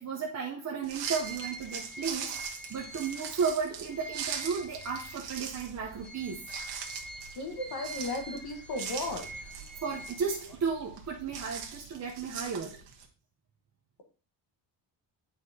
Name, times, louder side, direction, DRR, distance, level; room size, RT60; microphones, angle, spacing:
voice 1, 0.0-6.5 9.8-12.8, right 5 dB, 35° right, -1 dB, 0.8 m, -34 dB
sound 1, 0.8-13.0, right 7 dB, 65° right, 1.2 m, -41 dB
sound 2, 1.1-5.4 5.8-10.7, right 2 dB, ahead, 0.5 m, -46 dB
voice 2, 7.3-9.3, left 2 dB, 55° left, 4 dB, 1.4 m, -35 dB
8.8 x 4.9 x 2.8 m, 0.35 s
cardioid pair, 150°, 45 cm